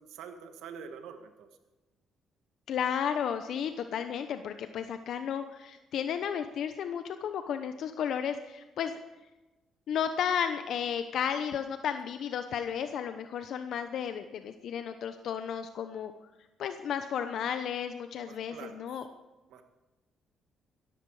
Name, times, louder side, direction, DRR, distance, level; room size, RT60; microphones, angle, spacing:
voice 1, 0.0-1.5 18.2-19.1 19.5-19.7, right 6 dB, 85° right, 7 dB, 1.8 m, -46 dB
voice 2, 2.7-9.0 9.9-16.1 16.6-19.0, left 8 dB, 70° left, 9 dB, 0.9 m, -33 dB
18.0 x 14.0 x 4.9 m, 1.1 s
cardioid pair, 85°, 0 cm